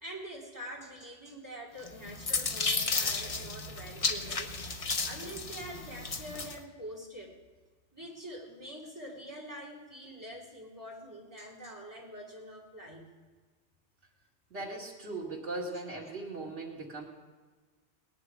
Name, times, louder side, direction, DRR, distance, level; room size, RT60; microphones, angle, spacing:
voice 1, 0.0-4.5 5.0-7.3 7.9-13.0, equal, 15° right, -2 dB, 3.0 m, -45 dB
sound 1, 1.8-6.6, left 4 dB, 35° left, 0.8 m, -33 dB
voice 2, 14.5-17.1, right 2 dB, 85° right, -4 dB, 2.8 m, -39 dB
18.0 x 10.5 x 4.9 m, 1.3 s
omnidirectional pair, 1.2 m